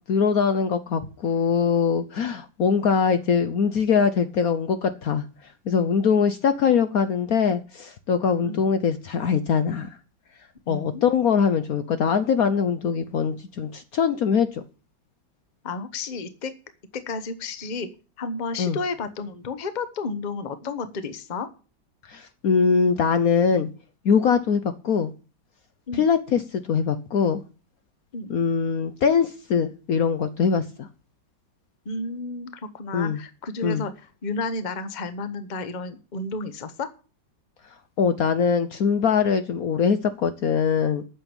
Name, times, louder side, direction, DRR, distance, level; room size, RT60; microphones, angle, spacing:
voice 1, 0.1-5.2 5.7-9.9 10.7-14.6 18.6-18.8 22.1-23.7 24.0-25.1 25.9-27.4 28.3-30.9 32.9-33.2 33.6-33.8 38.0-41.0, left 6 dB, 60° left, 1.1 m, -22 dB
voice 2, 10.7-11.0 15.6-16.5 16.9-17.9 18.2-21.5 25.9-26.1 28.1-28.3 31.8-33.9 34.2-36.9, left 3 dB, 30° left, 1.0 m, -32 dB
9.1 x 7.1 x 9.0 m
omnidirectional pair, 1.9 m